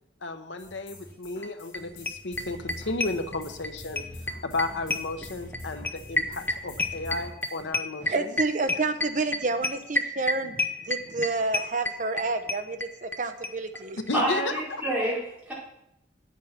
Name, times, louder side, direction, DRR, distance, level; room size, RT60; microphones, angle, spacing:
voice 1, 0.2-4.0 4.4-8.3 14.1-14.8, left 2 dB, 85° left, 7 dB, 1.0 m, -33 dB
sound 1, 0.6-7.6, left 1 dB, 50° left, 3.4 m, -44 dB
sound 2, 1.4-1.5 1.7-1.8 2.1-3.7 4.0-13.2 13.4-13.5 13.8-13.9 14.1-14.2, left 2 dB, 10° left, 0.6 m, -28 dB
voice 2, 8.0-14.0, right 3 dB, 45° right, 8 dB, 0.8 m, -29 dB
voice 3, 14.1-15.5, right 1 dB, 10° right, -8 dB, 4.8 m, -28 dB
9.0 x 8.3 x 5.9 m, 0.79 s
head